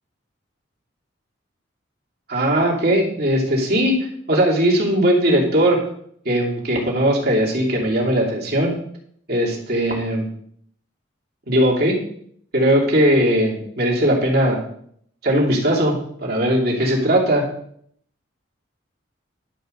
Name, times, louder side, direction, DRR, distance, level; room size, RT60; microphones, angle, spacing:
voice 1, 2.3-4.0 4.3-5.8 6.2-8.7 9.3-10.3 11.5-12.0 12.5-14.6 15.2-17.5, equal, 50° right, -2 dB, 2.8 m, -19 dB
11.5 x 4.8 x 6.5 m, 0.65 s
head